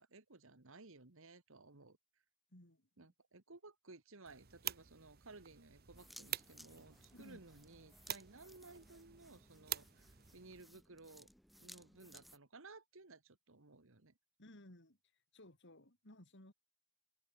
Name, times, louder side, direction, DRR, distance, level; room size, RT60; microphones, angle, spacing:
voice 1, 0.0-2.0 3.0-11.3 11.6-14.1, right 3 dB, 60° right, 1.7 m, -58 dB
voice 2, 2.5-3.1 7.1-7.4 14.4-16.5, left 1 dB, 55° left, 4.1 m, -59 dB
sound 1, 4.3-10.6, right 12 dB, 45° right, 1.2 m, -48 dB
sound 2, 5.9-12.4, equal, ahead, 2.0 m, -61 dB
head